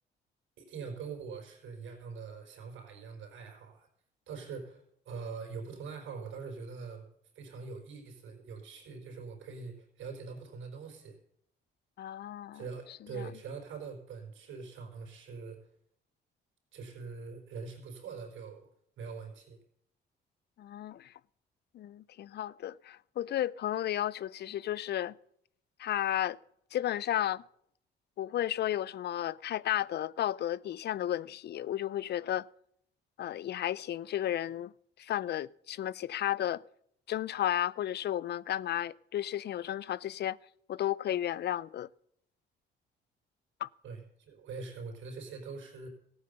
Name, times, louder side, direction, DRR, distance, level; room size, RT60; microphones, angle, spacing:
voice 1, 0.6-3.9 4.3-7.1 7.3-11.2 12.5-15.7 16.7-18.7 19.0-19.6 43.8-45.9, right 5 dB, 80° right, 4.5 m, -43 dB
voice 2, 12.0-12.6 13.2-13.3 20.6-21.1 21.7-25.1 25.8-26.4 26.7-27.4 28.2-32.5 33.2-34.7 35.0-36.6 37.1-40.4 40.7-41.9 43.6-43.7, left 12 dB, 55° left, 0.4 m, -33 dB
15.0 x 8.9 x 6.7 m
cardioid pair, 90°, 20 cm